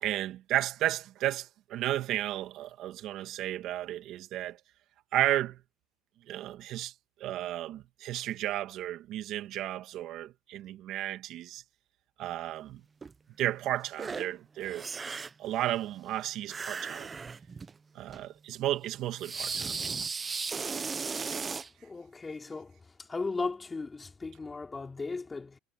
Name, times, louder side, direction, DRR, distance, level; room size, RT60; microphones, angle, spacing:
voice 1, 0.0-4.6 5.1-5.6 6.3-6.9 7.2-11.6 12.2-12.8 13.4-14.9 15.4-17.1 17.9-19.7 20.0-20.1 21.2-21.4, right 13 dB, 55° right, 2.3 m, -33 dB
sound 1, 13.0-13.1 14.0-14.3 14.6-15.5 16.5-17.7 18.1-18.2 19.2-21.7, right 5 dB, 25° right, 0.9 m, -36 dB
voice 2, 21.8-22.8 23.1-25.6, left 3 dB, 20° left, 3.5 m, -36 dB
supercardioid pair, 110°, 0 cm